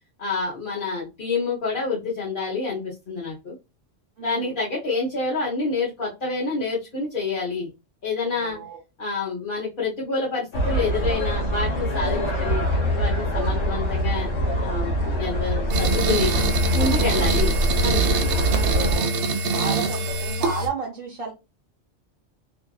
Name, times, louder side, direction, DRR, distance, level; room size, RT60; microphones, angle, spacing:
voice 1, 0.2-3.5 4.2-7.7 8.0-8.6 9.0-12.6 12.9-14.3 14.6-16.3 16.7-17.5 17.8-18.4, left 4 dB, 50° left, 1.0 m, -27 dB
voice 2, 4.2-4.6 8.2-8.8 12.0-12.3 17.1-17.4 18.5-19.1 19.4-21.3, right 4 dB, 60° right, 0.9 m, -34 dB
sound 1, 10.5-19.0, equal, 80° left, 1.3 m, -24 dB
sound 2, 15.7-20.7, right 3 dB, 90° right, 0.9 m, -24 dB
2.7 x 2.4 x 2.3 m
omnidirectional pair, 1.1 m